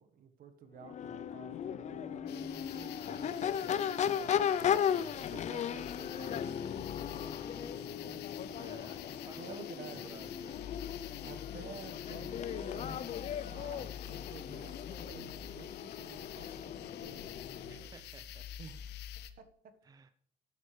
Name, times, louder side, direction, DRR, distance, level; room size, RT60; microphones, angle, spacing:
voice 1, 0.0-8.3 9.4-10.2 11.2-17.8 18.6-18.9 19.4-19.7, right 6 dB, 55° right, 9 dB, 1.4 m, -52 dB
Crowd / Race car auto racing / Accelerating revving vroom, 0.8-17.9, left 9 dB, 45° left, 0.5 m, -37 dB
sound 1, 2.3-19.3, left 11 dB, 80° left, 1.0 m, -48 dB
voice 2, 8.6-10.6 17.7-18.5 19.8-20.1, right 4 dB, 20° right, 11 dB, 0.6 m, -54 dB
13.0 x 11.0 x 3.3 m, 0.69 s
cardioid pair, 110°, 17 cm